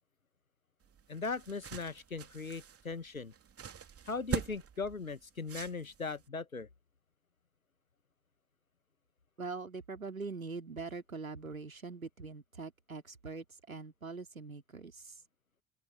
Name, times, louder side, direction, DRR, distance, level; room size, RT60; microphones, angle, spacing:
sound 1, 0.8-6.3, right 8 dB, 35° right, 2.9 m, -43 dB
voice 1, 1.1-3.3 4.0-6.7, left 4 dB, 90° left, 1.5 m, -39 dB
voice 2, 9.4-15.2, right 4 dB, 90° right, 2.9 m, -43 dB
open air
figure-of-eight pair, 55°, 40 cm